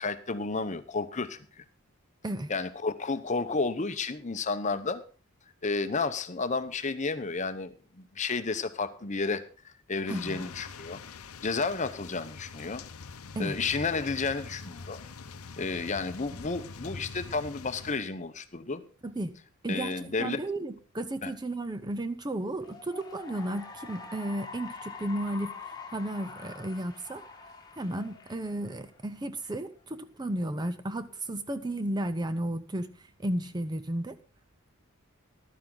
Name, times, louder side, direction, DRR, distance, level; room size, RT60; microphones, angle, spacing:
voice 1, 0.0-1.6 2.5-5.0 5.6-11.0 11.4-12.8 13.4-15.0 15.6-18.8 19.7-20.4 21.2-21.3, left 4 dB, 35° left, 11 dB, 0.8 m, -32 dB
sound 1, 10.1-17.9, left 4 dB, 80° left, 0.8 m, -44 dB
voice 2, 10.1-10.4 13.4-13.5 19.0-19.3 19.6-25.5 25.9-27.2 27.7-32.9 33.2-34.2, right 1 dB, 20° right, 10 dB, 0.6 m, -33 dB
Cheering / Applause, 22.5-29.2, left 4 dB, 20° left, 1.5 m, -45 dB
14.5 x 12.0 x 3.9 m, 0.39 s
head